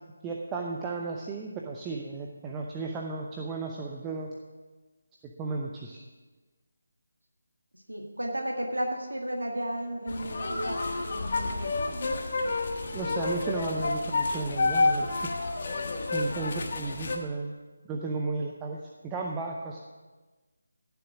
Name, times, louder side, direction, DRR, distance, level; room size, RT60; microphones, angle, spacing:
voice 1, 0.2-4.3 5.2-6.0 12.9-15.3 16.1-17.5 17.9-19.8, right 3 dB, 15° right, 0 dB, 0.7 m, -34 dB
voice 2, 7.7-11.8, right 1 dB, 80° right, 1 dB, 1.8 m, -34 dB
sound 1, 10.1-17.2, left 3 dB, 45° left, 1.4 m, -29 dB
14.5 x 7.1 x 6.0 m, 1.3 s
figure-of-eight pair, 155°, 0 cm